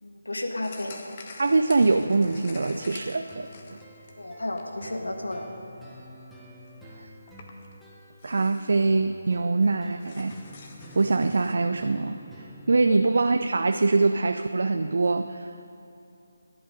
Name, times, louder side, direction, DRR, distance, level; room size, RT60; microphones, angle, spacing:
voice 1, 0.0-1.0 4.2-5.5 12.9-13.0, left 1 dB, 75° left, 3 dB, 1.6 m, -33 dB
sound 1, 0.6-5.0 5.5-5.6 6.4-6.5 6.6-6.7 7.3-7.7 8.2-9.0 9.4-9.5 9.6-11.6, left 4 dB, 35° left, 1.3 m, -47 dB
voice 2, 1.4-3.8 7.0-7.1 8.2-10.3 11.0-12.2 12.7-15.5, right 3 dB, 60° right, 8 dB, 0.5 m, -23 dB
sound 2, 1.8-12.8, equal, ahead, 1.3 m, -49 dB
14.5 x 11.0 x 5.3 m, 2.9 s
figure-of-eight pair, 155°, 0 cm